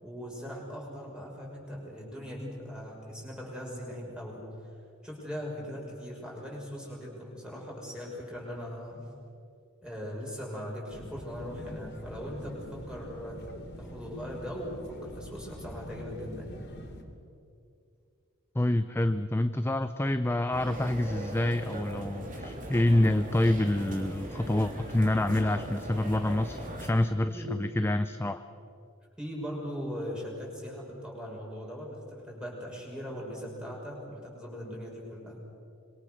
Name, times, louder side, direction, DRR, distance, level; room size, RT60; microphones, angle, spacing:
voice 1, 0.0-4.4 5.0-9.0 9.8-13.5 13.8-16.6 27.3-27.5 29.2-35.4, equal, 5° right, -3 dB, 6.3 m, -40 dB
sound 1, 10.9-17.0, equal, 50° left, 3.0 m, -44 dB
voice 2, 18.6-28.4, left 1 dB, 10° left, 10 dB, 0.5 m, -27 dB
sound 2, 20.5-26.9, right 1 dB, 40° right, 3.5 m, -39 dB
26.0 x 23.5 x 6.6 m, 2.5 s
head